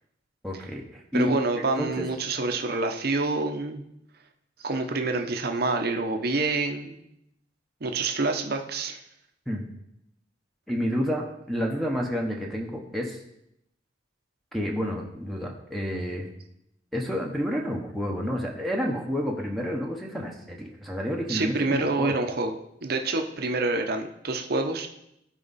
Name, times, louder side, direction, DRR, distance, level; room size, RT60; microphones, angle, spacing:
voice 1, 0.4-2.0 9.5-9.6 10.7-13.2 14.5-16.3 16.9-22.2, equal, ahead, 0 dB, 0.9 m, -30 dB
voice 2, 1.1-3.8 4.6-7.0 7.8-9.0 21.3-22.5 22.8-24.9, right 3 dB, 55° right, 5 dB, 0.8 m, -27 dB
13.0 x 4.9 x 4.1 m, 0.80 s
head